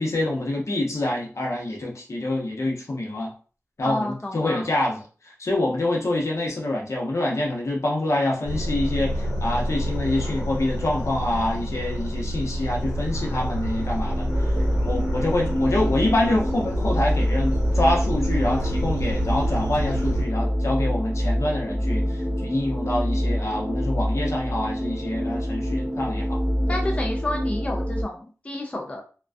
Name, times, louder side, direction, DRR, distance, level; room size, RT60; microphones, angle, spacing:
voice 1, 0.0-3.3 3.8-14.3 14.8-26.4 26.7-26.8, left 1 dB, 65° left, -2 dB, 0.7 m, -26 dB
voice 2, 3.8-4.7 26.7-29.0, left 1 dB, 25° left, 1 dB, 0.4 m, -30 dB
sound 1, 8.4-20.2, equal, 90° left, 1.1 m, -28 dB
sound 2, 13.6-28.0, equal, 5° right, 0.7 m, -26 dB
2.4 x 2.2 x 2.2 m, 0.39 s
wide cardioid pair, 80°, 5 cm